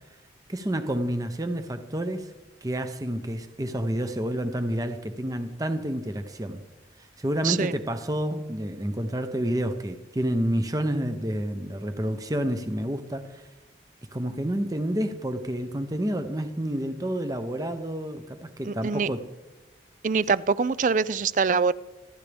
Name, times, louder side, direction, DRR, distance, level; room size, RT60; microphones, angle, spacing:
voice 1, 0.5-2.3 2.6-6.6 7.0-13.5 14.1-19.2, right 1 dB, 20° right, 0.7 m, -29 dB
voice 2, 18.6-19.1 20.0-21.7, right 5 dB, 45° right, 0.4 m, -24 dB
27.0 x 11.0 x 3.4 m
head